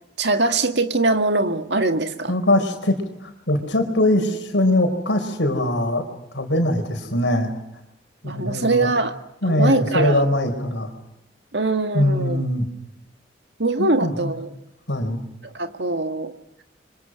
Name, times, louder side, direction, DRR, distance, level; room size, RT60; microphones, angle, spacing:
voice 1, 0.2-2.3 8.2-9.2 9.4-10.2 11.5-12.4 13.6-14.5 15.5-16.3, right 2 dB, 70° right, 7 dB, 1.9 m, -22 dB
voice 2, 2.3-6.0 6.3-7.5 8.2-9.0 9.4-10.9 11.9-12.7 13.8-14.3 14.9-15.2, left 1 dB, 85° left, 6 dB, 4.7 m, -22 dB
29.5 x 25.0 x 6.3 m, 0.85 s
head